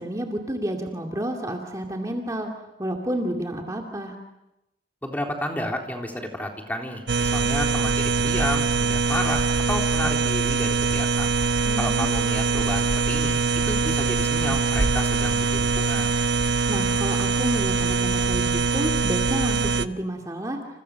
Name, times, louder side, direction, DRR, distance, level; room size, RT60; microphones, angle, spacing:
voice 1, 0.0-2.5 2.8-4.2 11.7-12.1 16.7-20.6, right 1 dB, 20° right, 1 dB, 2.4 m, -30 dB
voice 2, 5.0-11.3 11.8-16.2, left 1 dB, 10° left, 1 dB, 3.7 m, -31 dB
sound 1, 7.1-19.9, right 4 dB, 80° right, 0.9 m, -23 dB
29.5 x 29.0 x 6.6 m, 0.94 s
head